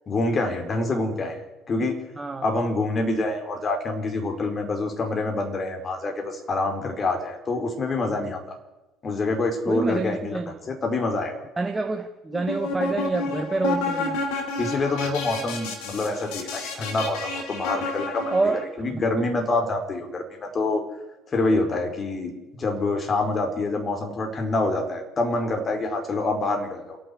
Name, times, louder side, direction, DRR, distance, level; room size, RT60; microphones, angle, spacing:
voice 1, 0.1-2.0 2.4-8.5 9.0-10.4 10.7-11.4 14.6-20.8 21.3-27.0, left 2 dB, 35° left, 4 dB, 4.5 m, -26 dB
voice 2, 2.2-2.5 9.7-10.7 11.6-14.2 18.3-18.6 18.9-19.2, right 3 dB, 20° right, 5 dB, 1.5 m, -27 dB
sound 1, 12.3-18.6, left 3 dB, 65° left, 3.0 m, -30 dB
28.0 x 9.6 x 9.5 m, 1.0 s
figure-of-eight pair, 60°, 0 cm